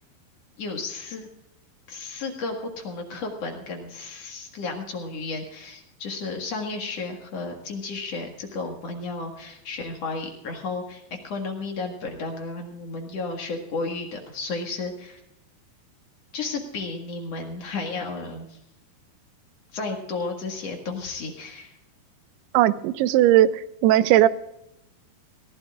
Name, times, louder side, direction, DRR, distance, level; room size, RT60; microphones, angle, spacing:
voice 1, 0.6-1.3 1.9-15.2 16.3-18.6 19.7-21.7, left 3 dB, 50° left, 2 dB, 2.2 m, -33 dB
voice 2, 22.5-24.3, right 13 dB, 80° right, 15 dB, 2.5 m, -18 dB
22.5 x 15.5 x 2.4 m, 0.85 s
omnidirectional pair, 4.8 m